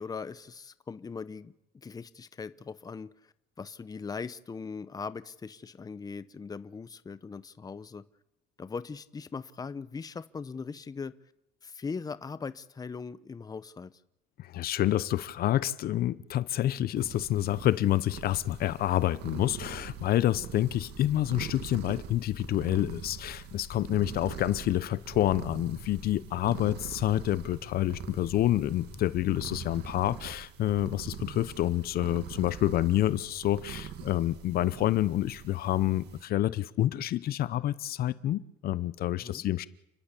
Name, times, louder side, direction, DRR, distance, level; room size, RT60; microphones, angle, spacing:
voice 1, 0.0-3.1 3.6-8.0 8.6-11.1 11.6-13.9 39.2-39.4, left 5 dB, 20° left, 14 dB, 0.8 m, -40 dB
voice 2, 14.4-39.7, left 13 dB, 65° left, 17 dB, 0.8 m, -28 dB
sound 1, 17.0-36.2, right 8 dB, 80° right, 2.0 m, -43 dB
sound 2, 22.6-30.0, left 6 dB, 40° left, 1.3 m, -50 dB
30.0 x 11.5 x 8.3 m, 0.83 s
cardioid pair, 110°, 17 cm